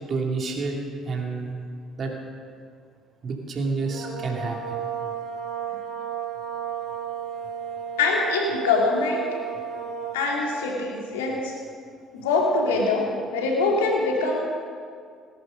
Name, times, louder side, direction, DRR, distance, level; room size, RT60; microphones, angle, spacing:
voice 1, 0.1-0.8 1.0-1.6 2.0-2.1 3.2-4.8, right 4 dB, 45° right, 1 dB, 2.7 m, -29 dB
sound 1, 3.8-10.4, right 8 dB, 65° right, 4.6 m, -33 dB
voice 2, 8.0-9.2 10.1-11.5 12.1-13.1 13.3-14.4, left 3 dB, 75° left, 0 dB, 2.4 m, -23 dB
18.5 x 10.5 x 5.4 m, 2.1 s
hypercardioid pair, 55°, 0 cm